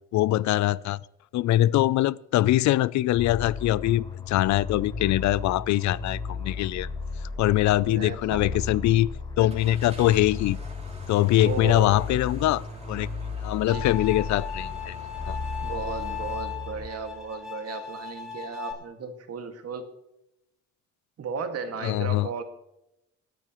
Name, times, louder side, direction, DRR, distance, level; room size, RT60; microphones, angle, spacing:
voice 1, 0.1-1.0 1.3-6.9 7.4-9.1 9.4-10.6 11.1-13.1 13.4-15.0 15.3-15.4 21.8-22.3, left 14 dB, 70° left, 0.5 m, -23 dB
sound 1, 3.1-17.3, left 4 dB, 15° left, 6.5 m, -35 dB
voice 2, 7.7-8.6 11.4-12.0 13.6-13.9 15.6-19.9 21.2-22.4, right 5 dB, 55° right, 2.0 m, -35 dB
Car / Engine starting, 9.5-16.3, right 3 dB, 20° right, 2.8 m, -45 dB
Bowed string instrument, 13.7-18.7, left 8 dB, ahead, 4.9 m, -37 dB
27.0 x 9.2 x 3.0 m
cardioid pair, 105°, 30 cm